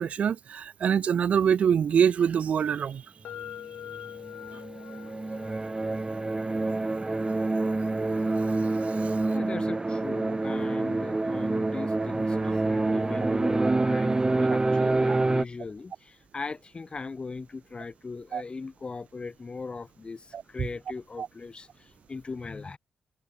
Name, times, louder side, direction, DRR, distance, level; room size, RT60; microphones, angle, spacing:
voice 1, 0.0-3.0 8.0-8.2 9.0-9.1 12.4-12.5 18.3-18.4 20.3-20.7 21.2-21.3, right 7 dB, 70° right, 2.7 m, -25 dB
sound 1, 3.2-11.1, left 10 dB, 80° left, 6.7 m, -47 dB
sound 2, 4.2-15.5, right 2 dB, 30° right, 4.4 m, -27 dB
voice 2, 9.3-22.8, left 4 dB, 45° left, 5.4 m, -39 dB
supercardioid pair, 45°, 2 cm